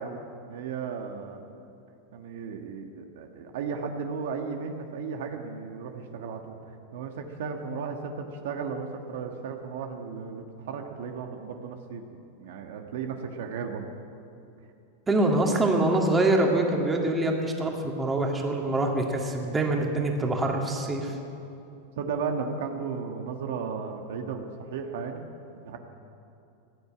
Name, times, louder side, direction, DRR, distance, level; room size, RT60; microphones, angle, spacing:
voice 1, 0.0-1.4 2.1-6.6 6.9-13.9 22.0-25.2 25.5-25.8, right 5 dB, 70° right, 4 dB, 1.5 m, -35 dB
voice 2, 15.1-21.1, right 2 dB, 15° right, 1 dB, 2.1 m, -25 dB
16.0 x 10.0 x 8.8 m, 2.7 s
supercardioid pair, 130°, 0 cm